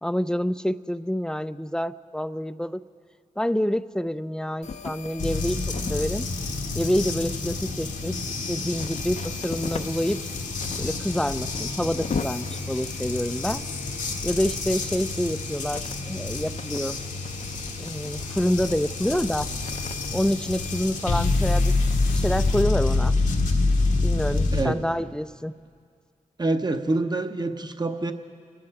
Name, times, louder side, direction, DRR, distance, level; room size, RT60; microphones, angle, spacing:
voice 1, 0.0-2.8 3.4-5.6 5.9-6.3 6.7-8.1 8.5-10.2 10.8-13.6 14.2-17.0 17.8-19.5 20.1-21.7 22.1-23.2 24.0-25.5, equal, 5° left, 13 dB, 0.5 m, -27 dB
sound 1, 4.6-22.6, left 5 dB, 60° left, 0.7 m, -40 dB
sound 2, 5.2-24.7, left 3 dB, 85° left, 1.5 m, -27 dB
voice 2, 26.4-28.1, right 2 dB, 30° right, 7 dB, 1.0 m, -26 dB
27.0 x 11.0 x 4.8 m, 2.2 s
cardioid pair, 50°, 13 cm